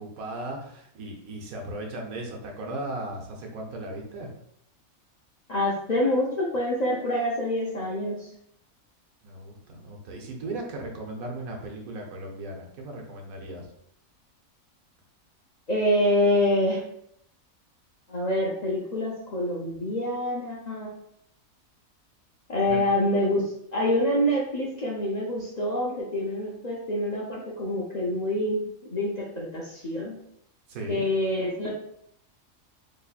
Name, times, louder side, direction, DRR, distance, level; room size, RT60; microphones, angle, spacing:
voice 1, 0.0-4.3 9.2-13.7 22.6-22.8 30.7-31.0, right 2 dB, 80° right, 1 dB, 1.2 m, -37 dB
voice 2, 5.5-8.3 15.7-16.8 18.1-20.9 22.5-30.2 30.9-31.7, left 1 dB, 60° left, -4 dB, 0.4 m, -26 dB
4.0 x 3.0 x 2.4 m, 0.71 s
omnidirectional pair, 1.5 m